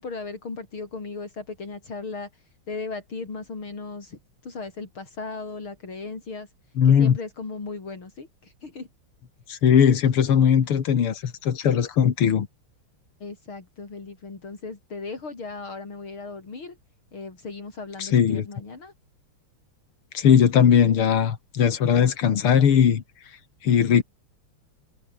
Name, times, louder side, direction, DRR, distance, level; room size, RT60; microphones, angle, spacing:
voice 1, 0.0-2.3 2.7-6.5 6.8-8.9 13.2-16.8 17.1-18.9, left 4 dB, 70° left, 5.2 m, -36 dB
voice 2, 6.8-7.2 9.5-12.5 18.0-18.5 20.1-23.0 23.6-24.0, left 8 dB, 90° left, 2.7 m, -19 dB
omnidirectional pair, 2.4 m